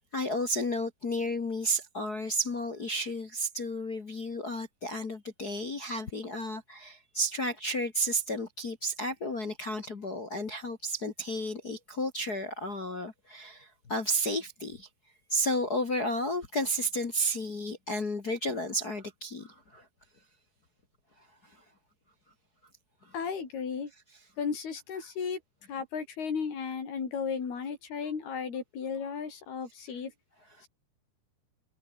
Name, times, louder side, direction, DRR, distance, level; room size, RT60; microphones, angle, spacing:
voice 1, 0.1-14.9 15.3-19.9 21.4-21.6 23.0-23.1 30.6-30.7, equal, 40° left, 1.4 m, -32 dB
voice 2, 23.1-23.9 24.4-25.4 25.7-30.1, left 6 dB, 70° left, 6.9 m, -34 dB
omnidirectional pair, 4.6 m